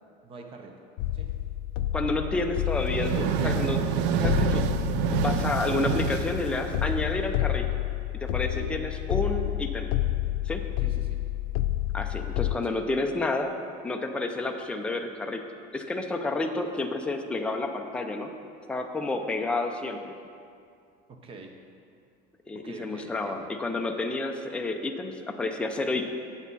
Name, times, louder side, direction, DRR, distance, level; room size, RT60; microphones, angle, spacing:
voice 1, 0.2-0.8 1.1-1.4 8.5-8.8 10.8-11.2 12.6-12.8 21.1-21.6 22.5-23.5, right 3 dB, 25° right, 3 dB, 0.8 m, -45 dB
sound 1, 1.0-12.6, left 14 dB, 75° left, 0.4 m, -29 dB
voice 2, 1.9-3.8 4.1-7.7 8.1-9.9 10.5-10.6 11.9-13.6 13.8-15.4 15.7-18.3 18.7-20.1 22.5-26.1, left 2 dB, 5° left, 4 dB, 0.4 m, -30 dB
sound 2, 2.7-7.3, right 9 dB, 65° right, 0.4 m, -28 dB
8.3 x 8.0 x 4.1 m, 2.3 s
cardioid pair, 160°, 21 cm